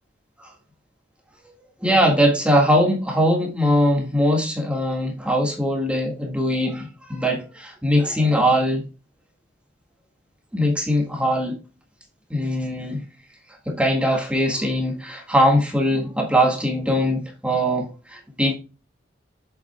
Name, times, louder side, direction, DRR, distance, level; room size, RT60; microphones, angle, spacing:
voice 1, 1.8-8.9 10.5-11.6 12.3-13.0 13.6-18.5, equal, 5° right, 1.7 m, -21 dB
7.8 x 7.7 x 2.2 m
head